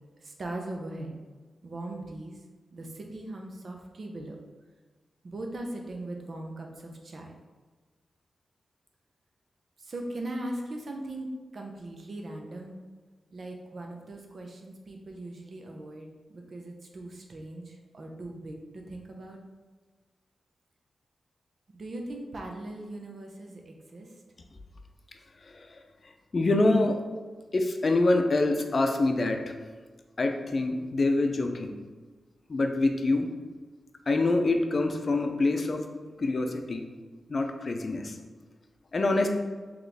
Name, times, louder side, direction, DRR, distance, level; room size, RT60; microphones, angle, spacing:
voice 1, 0.2-1.1 1.6-2.4 2.7-4.4 5.2-7.3 9.8-11.3 11.5-12.8 13.3-19.4 21.7-24.2, right 1 dB, 60° right, 2 dB, 0.6 m, -39 dB
voice 2, 26.3-27.0 27.5-29.4 30.2-31.7 32.5-33.3 34.1-35.8 36.2-36.8 37.3-38.1 38.9-39.3, left 2 dB, 50° left, 4 dB, 0.5 m, -25 dB
4.0 x 3.0 x 3.3 m, 1.4 s
cardioid pair, 55°, 0 cm